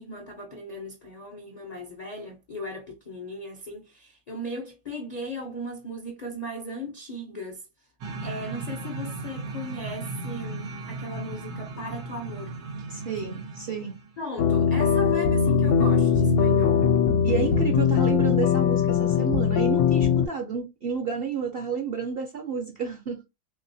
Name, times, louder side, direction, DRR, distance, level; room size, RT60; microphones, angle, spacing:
voice 1, 0.0-7.6 8.2-12.6 14.2-16.9, left 1 dB, 50° left, 0.4 m, -37 dB
sound 1, 8.0-14.2, right 3 dB, 90° right, 1.2 m, -36 dB
voice 2, 12.9-13.9 17.2-23.2, right 5 dB, 55° right, 0.6 m, -30 dB
sound 2, 14.4-20.3, left 7 dB, 75° left, 1.0 m, -21 dB
3.3 x 2.8 x 2.6 m
omnidirectional pair, 1.6 m